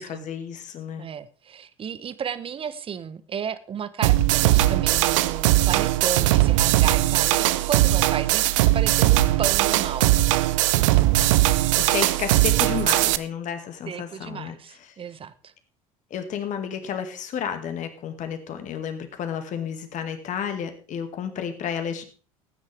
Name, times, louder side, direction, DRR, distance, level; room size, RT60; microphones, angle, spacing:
voice 1, 0.0-1.1 11.2-11.3 11.8-14.6 16.1-22.0, left 8 dB, 45° left, 7 dB, 2.0 m, -31 dB
voice 2, 1.0-10.1 13.9-15.5, right 7 dB, 30° right, 15 dB, 1.0 m, -33 dB
sound 1, 4.0-13.2, right 16 dB, 65° right, 0.6 m, -20 dB
17.5 x 9.6 x 3.4 m, 0.36 s
figure-of-eight pair, 65°, 18 cm